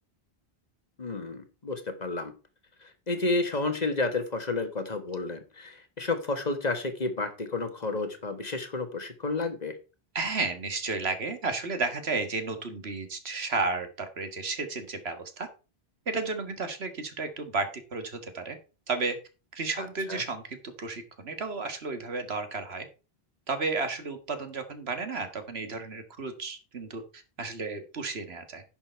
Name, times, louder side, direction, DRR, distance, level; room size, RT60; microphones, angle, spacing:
voice 1, 1.0-2.3 2.8-9.8 19.8-20.2, left 3 dB, 40° left, 8 dB, 1.5 m, -31 dB
voice 2, 10.2-15.5 16.1-18.6 18.9-19.2 19.5-22.9 23.5-28.6, right 3 dB, 75° right, 8 dB, 1.9 m, -33 dB
10.5 x 6.7 x 4.5 m, 0.32 s
omnidirectional pair, 1.1 m